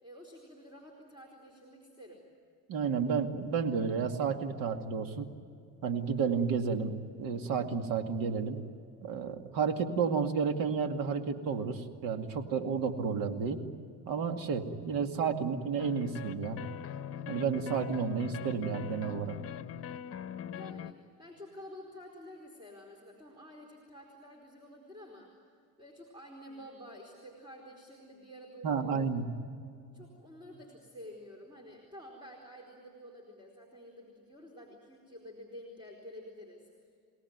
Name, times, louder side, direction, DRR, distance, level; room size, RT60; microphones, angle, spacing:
voice 1, 0.0-2.2 20.5-25.3 25.8-29.1 29.9-36.7, equal, 15° right, 0 dB, 4.5 m, -50 dB
voice 2, 2.7-5.3 5.8-6.9 7.2-8.6 9.0-13.6 14.1-16.6 17.3-19.4 28.6-29.3, right 6 dB, 70° right, 6 dB, 2.4 m, -31 dB
sound 1, 15.8-20.9, left 9 dB, 40° left, 1.1 m, -41 dB
29.0 x 18.5 x 9.5 m, 2.4 s
cardioid pair, 115°, 36 cm